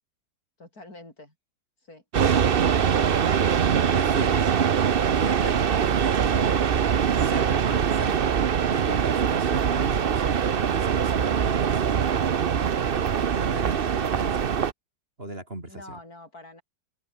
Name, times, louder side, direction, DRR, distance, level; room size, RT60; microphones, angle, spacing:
voice 1, 0.6-1.3 1.8-2.0 4.9-5.2 15.7-16.6, left 2 dB, 55° left, 6.9 m, -46 dB
sound 1, 2.1-14.7, right 7 dB, 45° right, 0.7 m, -23 dB
voice 2, 3.9-4.5 5.2-6.7 7.2-8.3 8.7-12.0 13.3-14.5 15.2-16.0, right 1 dB, 30° right, 4.7 m, -37 dB
open air
omnidirectional pair, 1.9 m